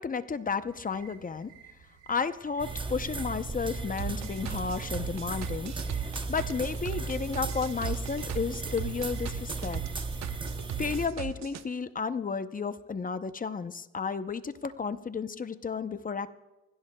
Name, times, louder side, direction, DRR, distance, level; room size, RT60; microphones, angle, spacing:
voice 1, 0.0-1.5 2.1-6.0 6.3-9.8 10.8-16.3, left 5 dB, 30° left, 11 dB, 0.7 m, -32 dB
sound 1, 0.7-11.2, right 8 dB, 85° right, 3.6 m, -55 dB
sound 2, 2.6-11.1, right 3 dB, 15° right, 0.9 m, -36 dB
sound 3, 4.0-11.6, right 11 dB, 65° right, 0.9 m, -38 dB
24.0 x 16.0 x 2.3 m, 1.1 s
cardioid pair, 90°, 30 cm